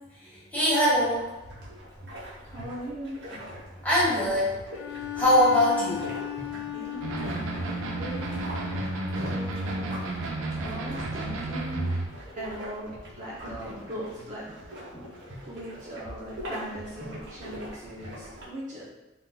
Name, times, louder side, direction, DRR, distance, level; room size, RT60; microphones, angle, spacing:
voice 1, 0.2-1.3 3.8-4.6 4.9-6.1 14.9-15.1, left 1 dB, 10° left, -9 dB, 1.1 m, -23 dB
sound 1, 1.1-18.5, equal, 55° right, 0.9 m, -42 dB
voice 2, 2.4-3.1 6.7-8.2 9.1-9.8 10.6-11.9 12.3-12.9 13.2-14.4 15.4-18.8, right 1 dB, 35° right, -6 dB, 0.5 m, -39 dB
Bowed string instrument, 4.7-9.4, left 14 dB, 70° left, 0.3 m, -37 dB
sound 2, 7.0-12.1, right 2 dB, 90° right, 0.4 m, -32 dB
3.7 x 2.5 x 2.3 m, 1.1 s
head